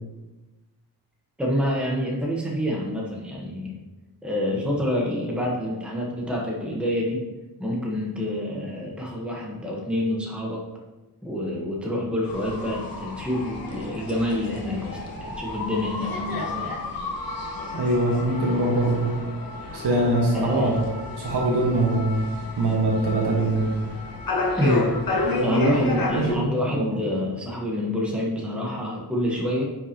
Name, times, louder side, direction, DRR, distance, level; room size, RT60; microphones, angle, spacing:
voice 1, 1.4-3.8 4.2-7.3 7.6-10.6 11.2-16.8 20.3-20.8 24.6-29.6, equal, 5° right, -3 dB, 1.1 m, -27 dB
sound 1, 12.3-26.3, left 3 dB, 60° left, 1.3 m, -31 dB
voice 2, 17.7-19.1 19.7-20.9 21.2-22.2 22.6-23.8 25.2-26.9, right 1 dB, 80° right, -4 dB, 1.6 m, -23 dB
9.5 x 5.7 x 2.9 m, 1.1 s
wide cardioid pair, 145°, 40 cm